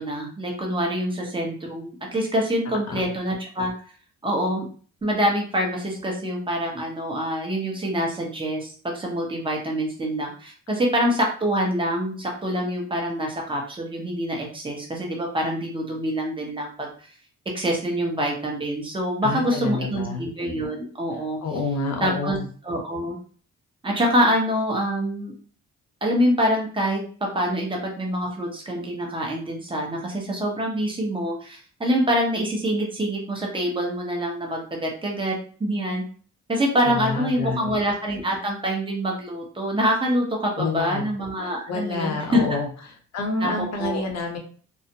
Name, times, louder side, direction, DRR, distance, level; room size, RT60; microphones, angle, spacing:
voice 1, 0.0-3.7 4.2-4.6 5.0-16.9 17.5-21.4 22.0-22.4 22.6-23.2 23.8-25.3 26.0-27.0 27.3-35.3 35.6-36.0 36.5-42.4 43.4-44.0, equal, 15° right, -1 dB, 0.9 m, -25 dB
voice 2, 19.2-20.2 21.4-22.4 36.9-37.8 40.6-41.1 41.4-42.7 43.1-44.4, left 3 dB, 60° left, 3 dB, 0.8 m, -28 dB
2.4 x 2.1 x 2.8 m, 0.42 s
cardioid pair, 90°, 30 cm